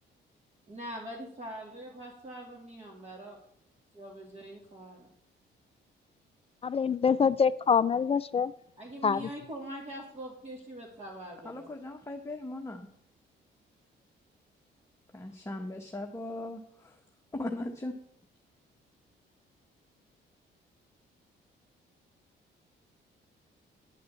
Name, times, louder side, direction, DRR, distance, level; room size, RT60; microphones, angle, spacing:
voice 1, 0.7-3.4 3.9-5.1 8.8-11.7, right 1 dB, 35° right, -3 dB, 2.6 m, -43 dB
voice 2, 6.6-8.5 9.0-9.2, left 6 dB, 30° left, 16 dB, 0.4 m, -25 dB
voice 3, 11.4-12.9 15.1-17.0 17.3-18.0, left 1 dB, 15° left, 3 dB, 1.1 m, -38 dB
10.0 x 6.1 x 7.4 m, 0.71 s
cardioid pair, 90°, 20 cm